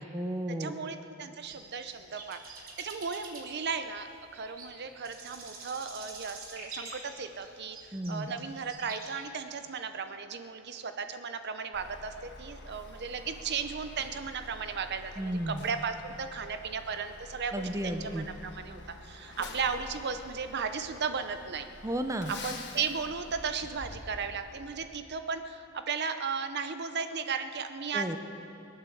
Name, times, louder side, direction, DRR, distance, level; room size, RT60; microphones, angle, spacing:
voice 1, 0.0-0.7 7.9-8.3 15.2-15.7 17.5-18.3 21.8-22.3 27.9-28.2, right 1 dB, 15° right, 6 dB, 0.7 m, -33 dB
voice 2, 0.6-4.1 4.3-21.7 22.4-28.2, right 5 dB, 55° right, 9 dB, 0.7 m, -35 dB
sound 1, 1.4-9.3, right 3 dB, 70° right, 3.3 m, -47 dB
Truck, 11.7-24.9, left 2 dB, 55° left, 1.5 m, -48 dB
22.0 x 9.1 x 7.1 m, 2.7 s
head